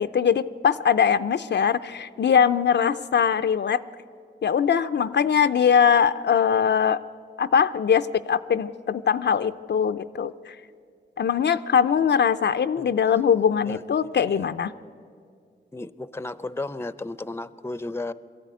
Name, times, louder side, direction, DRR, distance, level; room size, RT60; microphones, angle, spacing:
voice 1, 0.0-3.8 4.4-7.0 7.4-10.6 11.2-14.7, left 7 dB, 65° left, 11 dB, 0.5 m, -21 dB
voice 2, 12.8-13.1 13.6-13.8 14.2-14.4 15.7-18.1, left 2 dB, 15° left, 15 dB, 0.6 m, -34 dB
22.0 x 13.5 x 9.2 m, 2.3 s
cardioid pair, 70°, 19 cm